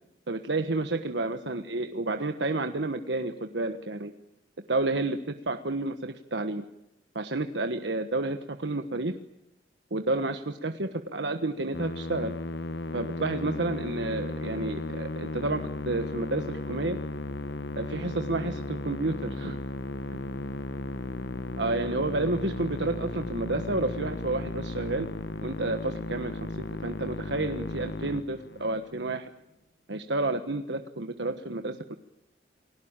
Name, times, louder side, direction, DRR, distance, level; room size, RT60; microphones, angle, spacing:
voice 1, 0.3-4.1 4.7-6.6 7.1-9.1 9.9-12.4 12.9-17.0 17.8-19.6 21.6-25.1 25.4-26.4 26.8-29.3 29.9-31.9, right 2 dB, 80° right, 7 dB, 1.3 m, -30 dB
Musical instrument, 11.7-28.9, left 2 dB, 70° left, 1.1 m, -35 dB
29.5 x 21.0 x 8.9 m, 0.86 s
head